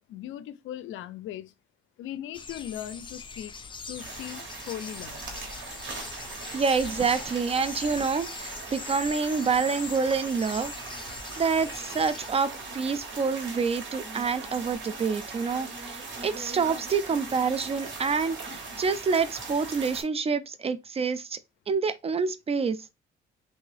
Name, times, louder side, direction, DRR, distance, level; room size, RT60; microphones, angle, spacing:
voice 1, 0.0-1.5 2.0-3.5 3.9-5.2, left 11 dB, 80° left, 0.4 m, -38 dB
sound 1, 2.3-12.3, left 5 dB, 25° left, 0.5 m, -42 dB
sound 2, 4.0-20.0, right 3 dB, 70° right, 1.4 m, -40 dB
voice 2, 6.5-10.7 11.4-21.4 21.7-22.8, right 5 dB, 30° right, 0.4 m, -27 dB
3.4 x 2.6 x 3.3 m
cardioid pair, 90°, 20 cm